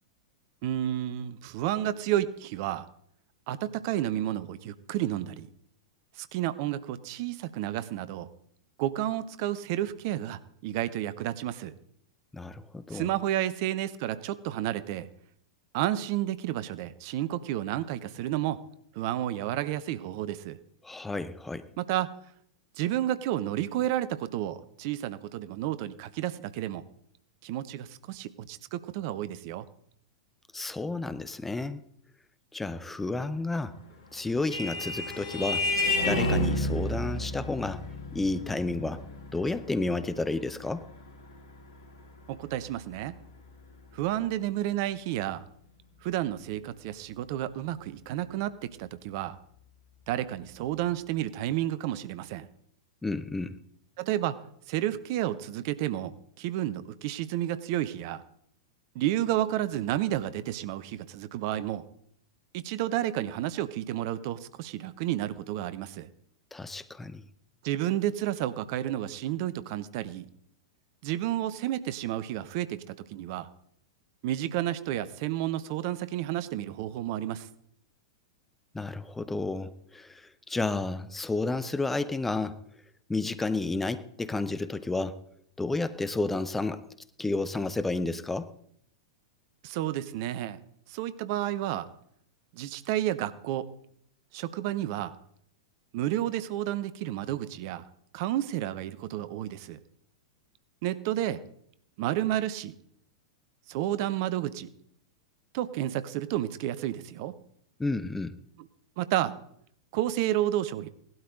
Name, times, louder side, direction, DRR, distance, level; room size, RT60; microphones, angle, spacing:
voice 1, 0.6-2.9 3.5-5.5 6.2-8.3 8.8-11.7 12.9-15.1 15.7-18.6 18.9-20.6 21.8-22.2 22.8-26.8 27.4-29.7 42.3-43.2 43.9-45.4 46.0-49.4 50.1-52.5 54.0-54.4 54.7-58.2 58.9-61.8 62.5-66.1 67.6-70.3 71.0-73.5 74.2-77.5 89.6-90.6 90.9-91.9 92.5-93.7 94.3-95.1 95.9-97.8 98.1-99.8 100.8-101.4 102.0-102.7 103.7-104.7 105.5-107.4 109.0-109.4 109.9-110.9, right 13 dB, 45° right, 0.8 m, -31 dB
voice 2, 12.3-13.1 20.8-21.7 30.5-31.8 32.5-33.8 34.1-35.7 36.0-37.9 38.1-39.1 39.3-40.9 53.0-53.6 66.5-67.2 78.7-82.6 83.1-85.2 85.6-86.9 87.2-88.5 107.8-108.4, left 3 dB, 10° left, 0.6 m, -31 dB
Vehicle horn car horn honking, 33.9-42.9, left 1 dB, 60° left, 2.3 m, -32 dB
18.0 x 12.0 x 3.8 m
figure-of-eight pair, 95°, 2 cm